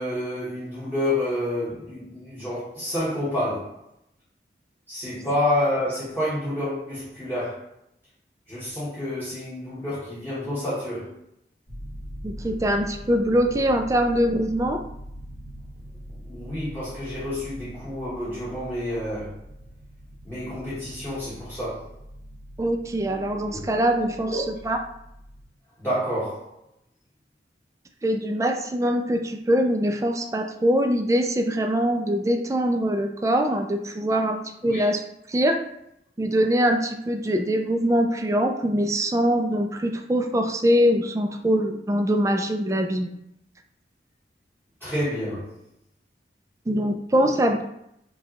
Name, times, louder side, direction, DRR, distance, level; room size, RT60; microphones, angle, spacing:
voice 1, 0.0-3.8 4.9-7.7 8.5-11.2 16.3-19.4 20.2-21.9 23.5-23.7 24.2-24.4 25.8-26.5 34.6-34.8 44.8-45.6, left 1 dB, 10° left, 1.0 m, -29 dB
sound 1, 11.7-25.4, equal, 35° left, 1.4 m, -42 dB
voice 2, 12.2-14.8 22.6-24.8 28.0-35.0 35.3-35.6 36.2-43.2 46.7-47.6, equal, 20° right, 0.3 m, -23 dB
4.9 x 2.3 x 2.8 m
head